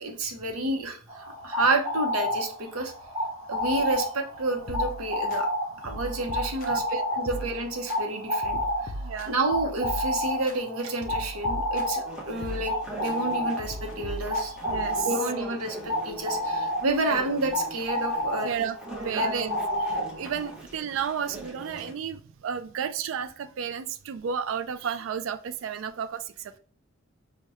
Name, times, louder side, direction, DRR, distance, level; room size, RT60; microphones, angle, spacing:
voice 1, 0.0-2.9 3.5-5.5 5.8-8.9 9.3-14.6 15.0-19.5, right 2 dB, 90° right, 3 dB, 0.7 m, -30 dB
sound 1, 1.1-20.5, left 1 dB, 20° right, 1.1 m, -31 dB
sound 2, 4.7-5.4 5.8-6.9 7.3-8.0 8.4-10.6 11.0-12.1 12.4-13.2 13.6-15.0, equal, 40° left, 0.5 m, -39 dB
voice 2, 6.6-7.2 9.0-9.4 14.7-15.1 18.4-18.8 19.0-19.5 19.9-26.6, right 7 dB, 65° right, 12 dB, 0.3 m, -32 dB
sound 3, 12.0-21.9, right 1 dB, 5° right, 0.7 m, -42 dB
4.7 x 2.1 x 2.8 m, 0.42 s
head